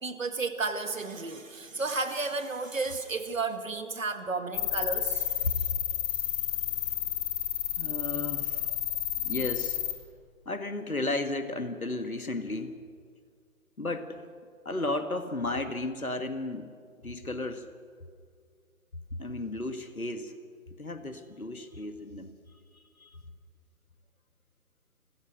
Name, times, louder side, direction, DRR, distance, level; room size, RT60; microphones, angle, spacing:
voice 1, 0.0-5.3, right 3 dB, 65° right, 2.1 m, -32 dB
sound 1, 4.5-9.9, left 14 dB, 10° left, 0.9 m, -31 dB
voice 2, 7.8-8.7 9.2-9.8 10.5-12.7 13.8-14.3 14.7-16.7 17.0-17.7 19.2-20.4 20.8-22.3 23.0-23.2, left 2 dB, 85° left, 1.9 m, -34 dB
28.5 x 15.5 x 6.5 m
figure-of-eight pair, 140°, 42 cm